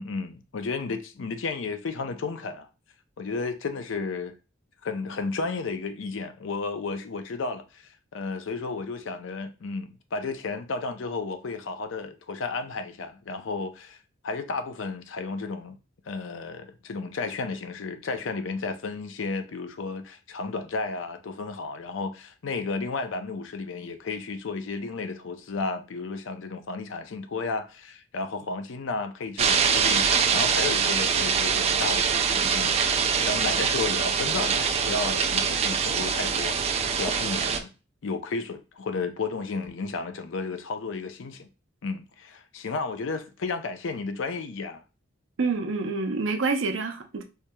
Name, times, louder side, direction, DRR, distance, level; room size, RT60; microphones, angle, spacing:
voice 1, 0.0-2.7 3.2-4.3 4.8-7.8 8.1-14.0 14.2-15.8 16.1-32.7 33.1-37.7 38.0-41.5 41.8-44.8, left 4 dB, 70° left, 0.5 m, -33 dB
sound 1, 29.4-37.6, right 6 dB, 35° right, 0.4 m, -24 dB
voice 2, 45.4-47.2, right 4 dB, 75° right, 0.6 m, -27 dB
4.6 x 2.7 x 2.2 m
head